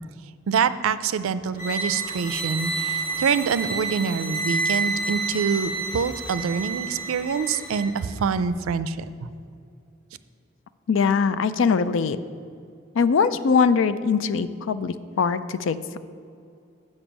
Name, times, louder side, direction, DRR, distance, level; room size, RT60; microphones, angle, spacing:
voice 1, 0.5-9.1, right 6 dB, 90° right, 13 dB, 0.4 m, -25 dB
sound 1, 1.6-7.9, right 3 dB, 40° left, 1.5 m, -29 dB
voice 2, 10.9-12.2 13.0-16.0, left 5 dB, 70° left, 13 dB, 0.4 m, -22 dB
7.0 x 5.3 x 7.3 m, 2.5 s
head